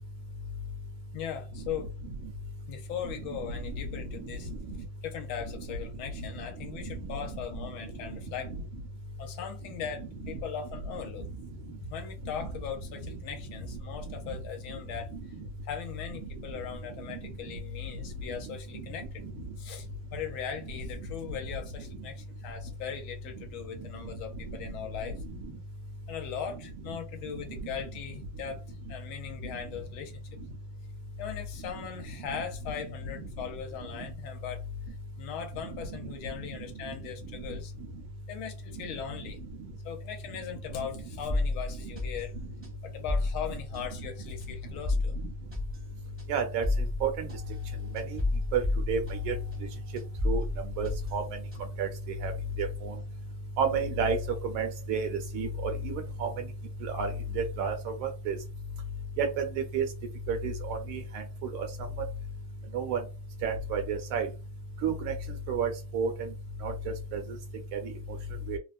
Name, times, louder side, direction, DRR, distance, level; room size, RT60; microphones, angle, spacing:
voice 1, 1.1-1.9 2.7-4.5 5.0-8.5 9.2-11.4 11.8-15.2 15.6-19.9 20.1-25.2 26.1-30.2 31.2-34.6 34.9-37.7 38.3-39.4 39.8-42.3 42.8-45.1, left 7 dB, 75° left, 1.3 m, -39 dB
voice 2, 3.2-4.8 5.5-5.7 6.2-6.3 6.6-7.7 8.1-8.2 9.8-9.9 10.2-10.4 10.9-11.0 12.2-12.5 14.0-14.3 15.1-15.2 16.2-16.3 17.0-17.6 18.5-18.6 19.2-19.4 25.1-25.5 26.9-27.0 27.3-27.4 29.5-29.6 31.6-31.7 32.2-32.8 33.1-33.3 33.9-34.1 35.6-36.0 36.8-36.9 37.3-37.4 38.7-38.8 39.5-39.7 40.8-40.9 41.8-41.9 43.5-43.6 44.0-44.1 45.1-45.3 46.3-46.7 47.0-47.3 47.9-48.2 48.5-49.4 50.2-51.4 51.8-52.3 52.6-53.0 53.6-56.3 56.8-58.4 59.2-59.9 60.3-61.2 61.5-61.7 62.7-63.0 63.4-64.3 64.8-65.1 65.5-66.3 66.6-67.2 67.7-67.9 68.5-68.6, right 4 dB, 80° right, 1.6 m, -32 dB
sound 1, 41.3-49.7 50.0-51.9, left 2 dB, 10° right, 0.7 m, -32 dB
3.6 x 2.1 x 2.4 m
omnidirectional pair, 2.4 m